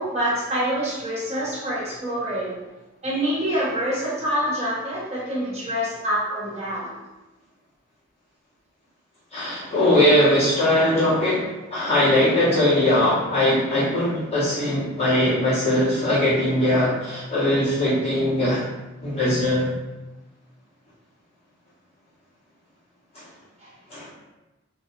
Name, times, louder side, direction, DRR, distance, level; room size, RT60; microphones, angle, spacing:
voice 1, 0.0-2.6 3.0-7.0, equal, 30° right, -9 dB, 1.1 m, -26 dB
voice 2, 9.3-18.6 19.0-19.7 23.1-23.2 23.9-24.1, left 1 dB, 30° left, -12 dB, 1.3 m, -20 dB
2.6 x 2.1 x 2.6 m, 1.1 s
head